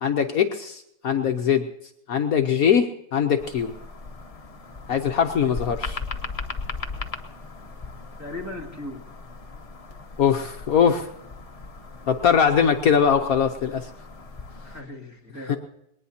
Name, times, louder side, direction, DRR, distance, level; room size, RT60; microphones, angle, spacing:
voice 1, 0.0-1.6 2.1-3.7 4.9-6.0 10.2-11.1 12.1-13.9 15.5-15.6, left 7 dB, 65° left, 5 dB, 1.2 m, -21 dB
sound 1, 3.4-14.8, left 4 dB, 35° left, 0.5 m, -38 dB
voice 2, 8.2-9.0 14.6-15.6, left 2 dB, 10° right, -2 dB, 2.0 m, -37 dB
21.0 x 19.0 x 2.8 m, 0.78 s
omnidirectional pair, 1.8 m